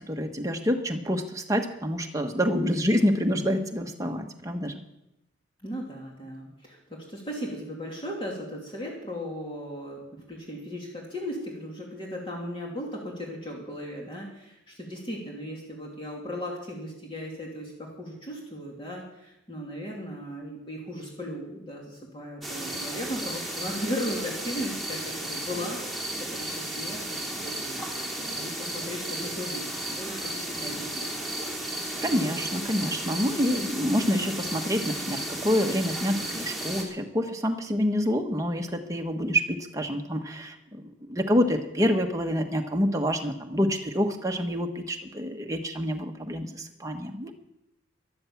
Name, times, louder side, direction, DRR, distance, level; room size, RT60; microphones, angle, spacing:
voice 1, 0.1-4.7 32.0-47.3, equal, 15° right, 3 dB, 1.3 m, -27 dB
voice 2, 5.6-27.8 28.2-31.3, equal, 25° left, -2 dB, 2.7 m, -37 dB
sound 1, 22.4-36.8, right 1 dB, ahead, 2.8 m, -34 dB
14.0 x 11.5 x 7.2 m, 0.88 s
head